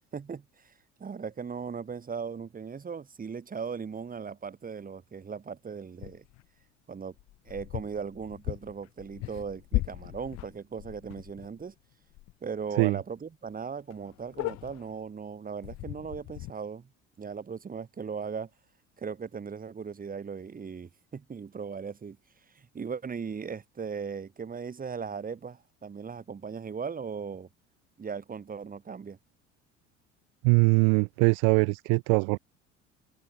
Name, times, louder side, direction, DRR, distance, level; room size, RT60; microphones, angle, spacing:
voice 1, 0.1-0.7 1.0-6.2 6.9-7.1 7.5-11.7 12.4-16.9 17.2-18.5 19.0-22.2 22.5-27.5 28.0-29.2, right 6 dB, 25° right, 2.8 m, -38 dB
sound 1, 6.0-6.5 7.2-11.7 12.1-12.3 12.6-12.7 13.2-13.3 13.5-13.6 13.9-15.0 15.6-16.5, left 19 dB, 50° left, 1.4 m, -37 dB
voice 2, 30.4-32.4, right 40 dB or more, 50° right, 0.5 m, -22 dB
figure-of-eight pair, 60°, 36 cm